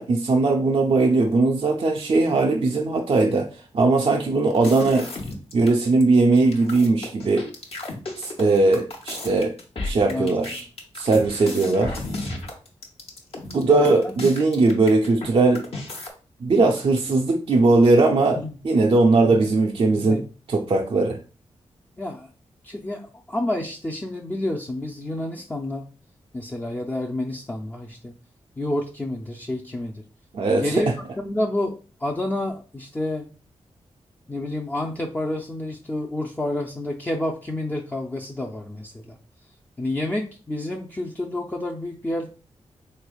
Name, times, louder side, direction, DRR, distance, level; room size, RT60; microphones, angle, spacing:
voice 1, 0.0-3.5 3.7-5.1 5.5-7.5 8.2-9.5 9.8-10.7 11.0-12.0 13.5-15.7 16.4-18.4 18.6-20.2 20.5-21.2 30.3-30.9, right 3 dB, 50° right, 2 dB, 0.4 m, -19 dB
sound 1, 4.5-5.7 6.0-6.1 6.4-15.3 15.5-16.1, left 2 dB, 60° left, 0.9 m, -33 dB
voice 2, 13.6-14.1 18.4-18.5 20.0-20.2 22.0-22.3 22.6-25.9 26.3-28.1 28.6-30.0 30.6-33.3 34.3-39.2 39.8-42.3, left 1 dB, 15° left, -1 dB, 0.4 m, -29 dB
3.4 x 3.2 x 2.3 m, 0.36 s
cardioid pair, 45°, 11 cm